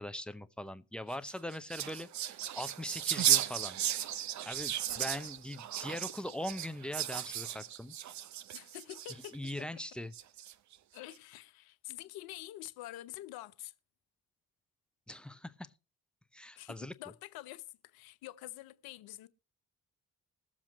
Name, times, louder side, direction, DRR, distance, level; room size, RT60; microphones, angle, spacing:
voice 1, 0.0-3.8 4.4-7.9 9.3-10.1 15.1-15.7 16.3-16.9, left 1 dB, ahead, 0.8 m, -41 dB
sound 1, 1.1-9.5 10.1-10.7, right 11 dB, 45° right, 0.7 m, -35 dB
voice 2, 8.5-9.4 10.9-13.7 16.5-19.3, left 15 dB, 65° left, 0.8 m, -47 dB
21.5 x 7.3 x 3.0 m
figure-of-eight pair, 40°, 40 cm